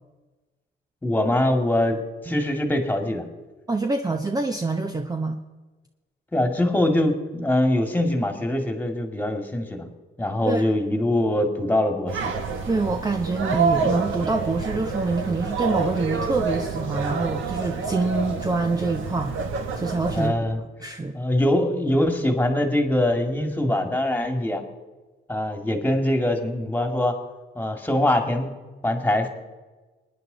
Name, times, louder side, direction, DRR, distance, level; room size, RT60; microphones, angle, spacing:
voice 1, 1.0-3.3 6.3-9.9 10.2-12.3 20.1-20.6 21.1-24.6 25.3-27.2 27.6-28.5 28.8-29.3, left 1 dB, 10° left, 5 dB, 2.2 m, -23 dB
voice 2, 3.7-5.4 10.5-10.7 12.7-20.3 20.8-21.2, right 3 dB, 20° right, 5 dB, 0.8 m, -26 dB
sound 1, 12.1-20.3, right 5 dB, 80° right, 1.5 m, -28 dB
24.0 x 9.7 x 4.0 m, 1.2 s
cardioid pair, 90°, 20 cm